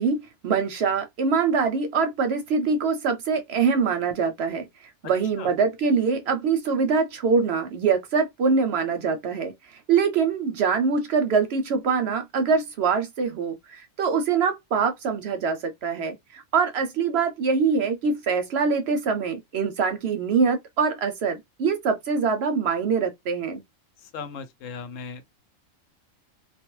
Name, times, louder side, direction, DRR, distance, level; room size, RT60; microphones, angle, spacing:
voice 1, 0.0-23.6, right 5 dB, 65° right, 0.7 m, -24 dB
voice 2, 24.1-25.2, left 5 dB, 80° left, 0.9 m, -37 dB
2.3 x 2.2 x 3.0 m
omnidirectional pair, 1.3 m